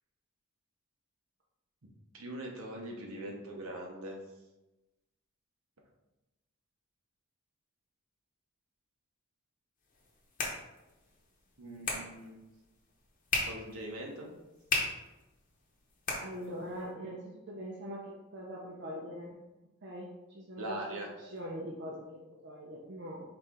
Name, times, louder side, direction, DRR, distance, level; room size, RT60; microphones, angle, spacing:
voice 1, 2.1-4.2 11.6-12.4 13.5-14.3 20.6-21.1, right 1 dB, 75° right, 0 dB, 1.0 m, -41 dB
sound 1, 9.8-16.9, left 3 dB, 40° left, 0.9 m, -39 dB
voice 2, 16.2-19.3 19.8-23.2, equal, 55° right, -3 dB, 0.7 m, -42 dB
4.3 x 3.3 x 3.7 m, 1.0 s
head